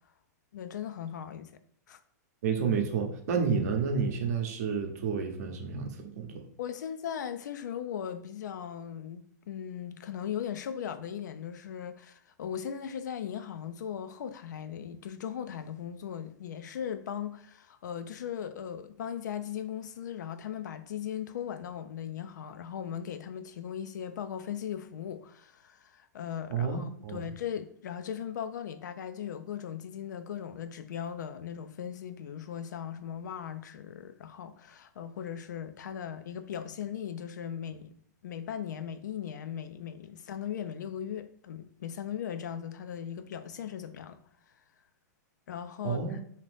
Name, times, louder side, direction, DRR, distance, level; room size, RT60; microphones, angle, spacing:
voice 1, 0.5-1.5 1.9-2.0 6.6-37.9 38.2-44.2 45.5-46.2, left 9 dB, 80° left, 0.4 m, -38 dB
voice 2, 2.4-6.3 26.5-27.2 45.8-46.2, right 5 dB, 60° right, 0.7 m, -30 dB
2.8 x 2.5 x 3.3 m
hypercardioid pair, 130°, 10 cm